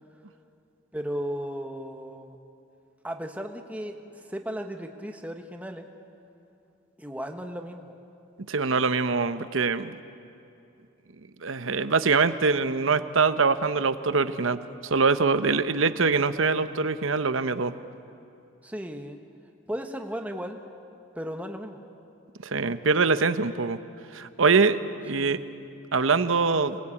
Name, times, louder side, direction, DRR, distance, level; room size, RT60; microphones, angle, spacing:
voice 1, 0.9-2.4 3.0-5.9 7.0-7.9 18.6-19.2 19.7-20.6 21.1-21.8 25.1-25.5, equal, 5° right, 4 dB, 1.2 m, -35 dB
voice 2, 8.5-10.0 11.4-17.7 22.4-23.8 24.1-25.4 25.9-26.8, right 4 dB, 75° right, 12 dB, 0.9 m, -24 dB
27.0 x 19.5 x 8.5 m, 2.7 s
head